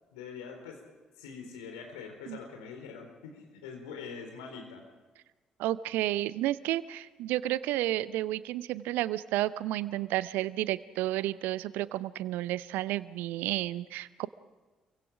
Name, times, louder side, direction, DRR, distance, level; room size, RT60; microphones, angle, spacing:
voice 1, 0.1-0.8 1.2-4.8, left 5 dB, 70° left, 3 dB, 4.2 m, -44 dB
voice 2, 5.6-14.3, right 15 dB, 65° right, 18 dB, 0.7 m, -31 dB
27.0 x 24.0 x 5.0 m, 1.3 s
figure-of-eight pair, 40°, 3 cm